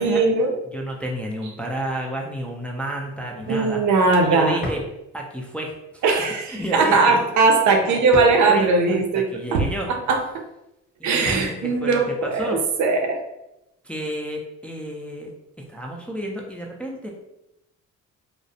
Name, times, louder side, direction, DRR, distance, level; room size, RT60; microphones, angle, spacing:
voice 1, 0.0-0.5 3.5-4.6 6.0-9.2 9.5-10.4 11.0-13.3, right 3 dB, 70° right, 4 dB, 0.5 m, -19 dB
voice 2, 0.6-3.8 4.2-4.8 5.1-7.2 7.8-8.0 8.5-9.9 11.0-12.6 13.8-15.3 15.6-17.1, right 1 dB, 5° left, -1 dB, 0.3 m, -31 dB
sound 1, 3.3-3.7 4.6-5.0 6.5-6.9 8.1-8.5 9.9-10.3 11.2-11.6, left 2 dB, 35° left, 0.6 m, -34 dB
2.3 x 2.0 x 2.6 m, 0.89 s
cardioid pair, 90°, 30 cm